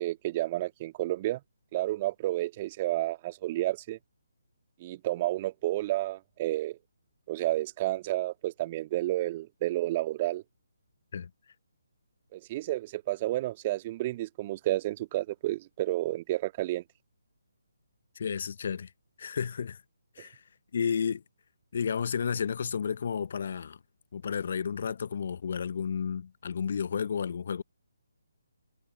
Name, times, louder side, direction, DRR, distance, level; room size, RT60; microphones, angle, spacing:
voice 1, 0.0-1.4 1.7-4.0 4.8-6.8 7.3-10.4 12.3-16.8, right 16 dB, 30° right, 1.9 m, -31 dB
voice 2, 18.1-18.9 19.2-19.8 20.2-20.4 20.7-21.2 21.7-23.8 24.1-27.6, left 6 dB, 50° left, 1.0 m, -32 dB
figure-of-eight pair, 145°, 0 cm